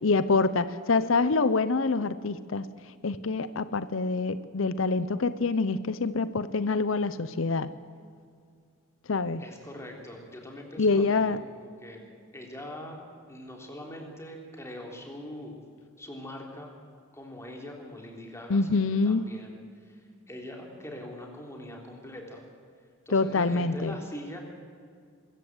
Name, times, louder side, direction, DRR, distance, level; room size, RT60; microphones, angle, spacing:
voice 1, 0.0-2.7 3.0-7.7 9.1-9.4 10.8-11.4 18.5-19.3 23.1-24.0, left 3 dB, 80° left, 14 dB, 0.7 m, -26 dB
voice 2, 9.4-12.1 12.3-13.0 13.3-15.6 16.0-16.7 17.1-22.4 23.0-24.4, left 1 dB, 15° left, 0 dB, 3.5 m, -42 dB
23.0 x 14.5 x 8.0 m, 2.2 s
head